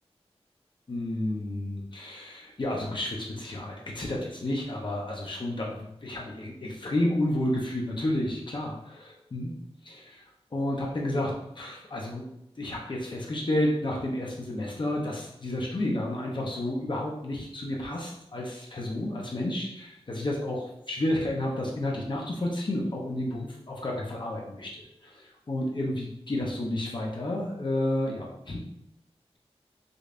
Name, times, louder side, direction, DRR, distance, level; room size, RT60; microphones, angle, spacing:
voice 1, 0.9-9.5 9.8-10.2 10.5-12.2 12.6-28.6, left 1 dB, 45° left, -2 dB, 0.6 m, -31 dB
5.1 x 2.1 x 2.5 m, 0.81 s
wide cardioid pair, 80°, 11 cm